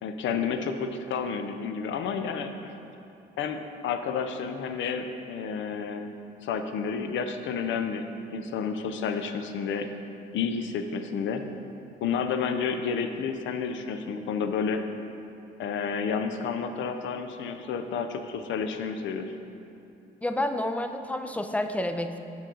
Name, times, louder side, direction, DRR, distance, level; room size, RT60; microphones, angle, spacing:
voice 1, 0.0-2.7 3.4-6.1 6.4-9.9 10.3-11.4 12.0-14.8 15.6-19.3, left 6 dB, 75° left, 7 dB, 0.5 m, -30 dB
voice 2, 20.2-22.2, left 1 dB, 5° left, 8 dB, 0.3 m, -29 dB
7.4 x 5.3 x 3.8 m, 2.7 s
cardioid pair, 90°, 20 cm